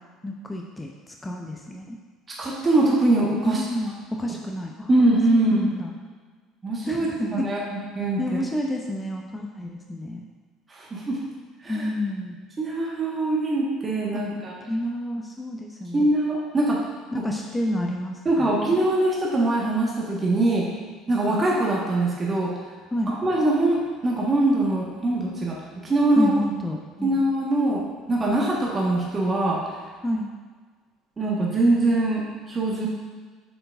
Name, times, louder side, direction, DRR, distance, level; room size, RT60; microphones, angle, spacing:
voice 1, 0.2-2.0 3.4-4.9 5.3-5.9 6.8-7.5 8.2-10.2 11.7-12.4 14.1-14.2 14.7-16.1 17.1-18.6 22.9-23.1 26.1-27.2 30.0-30.3, left 1 dB, 15° left, 1 dB, 0.7 m, -29 dB
voice 2, 2.4-3.6 4.9-5.7 6.6-7.6 7.9-8.4 10.7-11.2 11.6-11.8 12.6-14.5 15.9-16.8 17.2-17.3 18.2-20.7 21.1-22.5 23.2-25.6 25.8-26.3 27.0-29.6 31.2-32.9, right 2 dB, 25° right, -4 dB, 1.6 m, -22 dB
7.7 x 6.8 x 2.6 m, 1.4 s
figure-of-eight pair, 60°, 0 cm